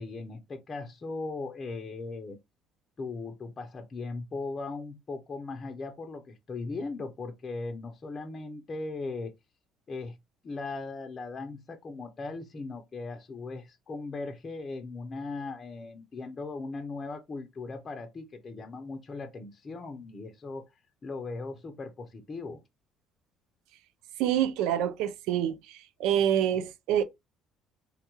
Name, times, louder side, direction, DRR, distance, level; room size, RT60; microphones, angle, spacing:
voice 1, 0.0-2.4 3.0-9.3 9.9-10.2 10.4-20.7 21.0-22.6, left 3 dB, 35° left, 0.6 m, -38 dB
voice 2, 24.2-27.0, right 10 dB, 85° right, 0.3 m, -27 dB
3.5 x 2.2 x 2.9 m
cardioid pair, 100°, 0 cm